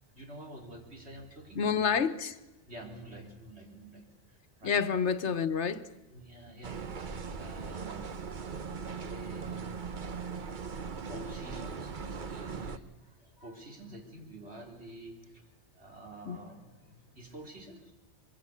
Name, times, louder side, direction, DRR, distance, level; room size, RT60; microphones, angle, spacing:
voice 1, 0.1-1.6 2.7-4.8 6.1-8.6 8.9-9.8 11.0-15.4 15.7-17.9, right 1 dB, 70° right, 4.5 m, -49 dB
voice 2, 1.5-2.4 4.6-5.8 16.2-16.4, left 6 dB, 85° left, 1.4 m, -28 dB
sound 1, 6.6-12.8, right 5 dB, 45° right, 1.0 m, -39 dB
24.5 x 22.5 x 6.9 m
omnidirectional pair, 1.1 m